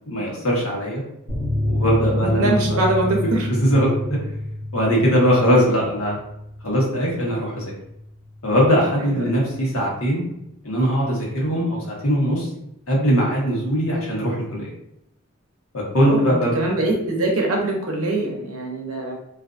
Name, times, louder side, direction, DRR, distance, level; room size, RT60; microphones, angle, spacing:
voice 1, 0.1-1.0 1.6-2.8 3.6-4.2 4.7-6.2 6.6-7.7 8.4-10.2 10.6-12.5 12.9-14.7 15.7-16.7, equal, 80° left, -3 dB, 1.1 m, -20 dB
sound 1, 1.3-8.4 8.6-8.7 9.1-9.2, left 1 dB, 35° left, 0.7 m, -28 dB
voice 2, 2.2-3.0 3.3-3.5 9.1-9.2 16.0-19.2, right 2 dB, 85° right, 0 dB, 0.7 m, -23 dB
2.6 x 2.4 x 2.4 m, 0.81 s
head